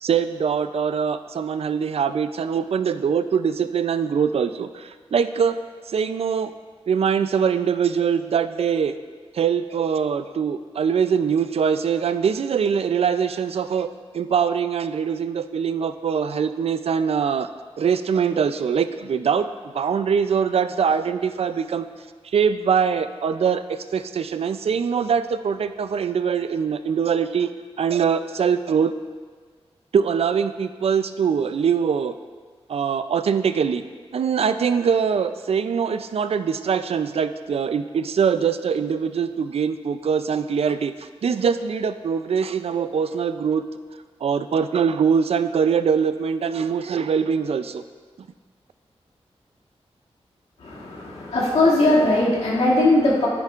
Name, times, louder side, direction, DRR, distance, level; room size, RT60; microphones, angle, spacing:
voice 1, 0.0-5.5 5.9-6.5 6.9-9.0 9.3-13.9 14.1-17.5 17.8-19.5 19.7-21.9 22.3-27.5 27.8-28.9 29.9-32.2 32.7-33.8 34.1-43.6 44.2-47.8, right 7 dB, 65° right, 11 dB, 0.4 m, -23 dB
voice 2, 50.6-53.3, left 2 dB, 90° left, -7 dB, 2.3 m, -19 dB
10.0 x 9.8 x 2.5 m, 1.5 s
wide cardioid pair, 75°, 11 cm